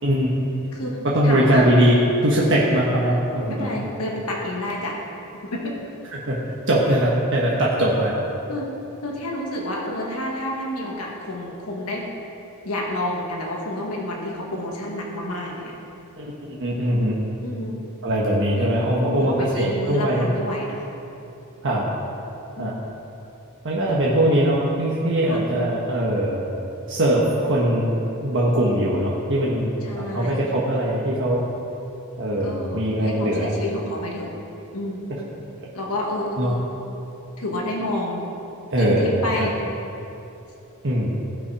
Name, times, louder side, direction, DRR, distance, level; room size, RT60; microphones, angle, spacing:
voice 1, 0.0-0.6 1.1-3.7 6.1-6.4 6.7-8.1 16.2-17.2 18.0-20.3 21.6-21.9 22.6-22.7 23.6-26.4 26.9-27.9 28.2-31.4 32.2-33.5 36.4-36.5 38.7-39.5 40.8-41.1, right 1 dB, 60° right, -5 dB, 1.4 m, -21 dB
voice 2, 0.7-1.6 3.5-5.0 5.5-5.7 8.5-8.7 9.0-12.1 12.6-15.7 17.4-17.9 18.9-20.8 22.6-22.7 25.3-25.4 29.8-30.4 32.4-34.3 34.7-35.0 35.7-36.6 37.4-38.2 38.8-39.6, left 1 dB, 90° left, -1 dB, 1.7 m, -29 dB
17.0 x 5.9 x 4.8 m, 2.8 s
head